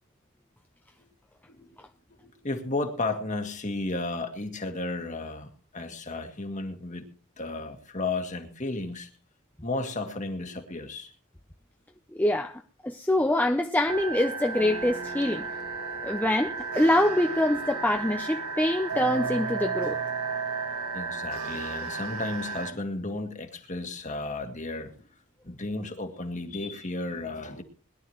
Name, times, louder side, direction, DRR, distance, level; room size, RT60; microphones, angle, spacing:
voice 1, 2.1-7.1 7.4-9.1 9.6-11.1 20.9-25.0 25.4-27.6, left 2 dB, 35° left, 1.9 m, -33 dB
voice 2, 12.1-15.4 16.0-20.0, left 1 dB, 10° left, 0.6 m, -25 dB
sound 1, 13.9-22.7, right 4 dB, 85° right, 2.2 m, -33 dB
21.0 x 11.5 x 3.1 m
head